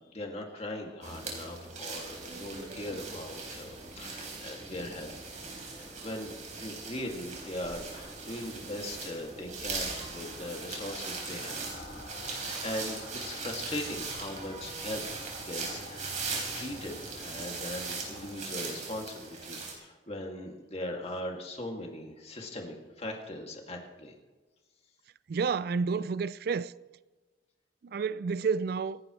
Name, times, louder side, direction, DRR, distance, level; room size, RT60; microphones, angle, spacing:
voice 1, 0.0-5.2 6.0-11.8 12.3-15.1 15.4-16.1 16.5-24.1, left 1 dB, 35° left, 2.4 m, -40 dB
sound 1, 1.0-19.7, right 4 dB, 45° right, 4.1 m, -40 dB
sound 2, 1.9-17.4, equal, 5° right, 3.9 m, -52 dB
sound 3, 9.4-19.1, left 2 dB, 60° left, 2.1 m, -51 dB
voice 2, 25.3-26.7 27.8-29.0, right 5 dB, 60° right, 0.4 m, -30 dB
26.5 x 11.5 x 3.2 m
head